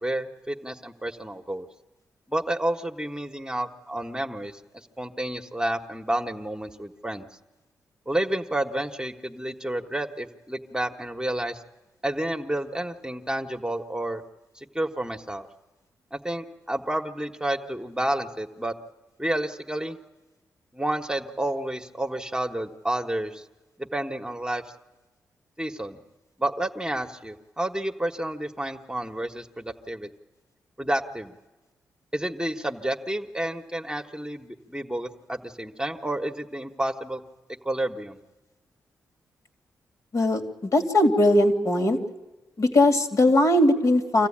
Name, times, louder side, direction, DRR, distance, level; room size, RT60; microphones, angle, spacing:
voice 1, 0.0-1.7 2.3-7.3 8.1-11.6 12.0-14.2 14.5-15.5 16.1-18.7 19.2-20.0 20.7-23.4 23.8-24.6 25.6-26.0 26.4-30.1 30.8-31.3 32.1-37.2 37.6-38.2, right 1 dB, 10° right, 4 dB, 1.4 m, -30 dB
voice 2, 40.1-42.0 42.6-44.3, left 1 dB, 55° left, 4 dB, 2.7 m, -20 dB
25.5 x 15.0 x 8.8 m, 1.1 s
supercardioid pair, 45°, 7 cm